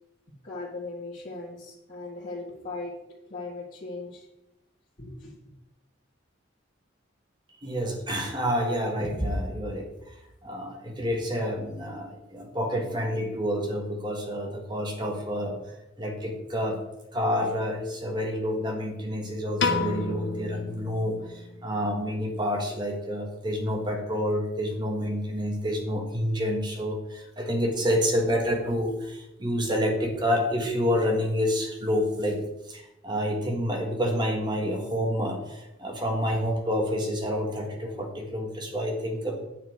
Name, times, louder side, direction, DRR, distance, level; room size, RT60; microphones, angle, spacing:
voice 1, 0.4-4.2 5.0-5.3, left 3 dB, 40° left, -8 dB, 2.0 m, -38 dB
voice 2, 7.6-9.9 10.4-15.6 16.0-16.8 17.1-32.4 32.7-39.5, equal, 20° right, 2 dB, 1.6 m, -28 dB
Piano, 19.6-21.9, left 4 dB, 60° left, 0.9 m, -30 dB
9.2 x 8.7 x 4.8 m, 0.93 s
head